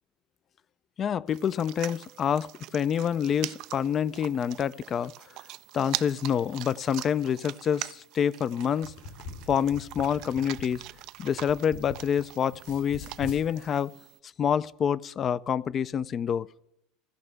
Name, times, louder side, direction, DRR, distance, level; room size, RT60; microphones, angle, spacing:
voice 1, 1.0-5.1 5.7-8.9 9.5-10.8 11.2-13.9 14.4-16.5, left 8 dB, 35° left, 20 dB, 0.4 m, -27 dB
sound 1, 1.3-14.2, right 17 dB, 60° right, 0.3 m, -42 dB
sound 2, 8.8-12.2 12.5-13.4, left 4 dB, 65° left, 5.2 m, -43 dB
15.5 x 5.5 x 7.6 m, 0.80 s
supercardioid pair, 120°, 0 cm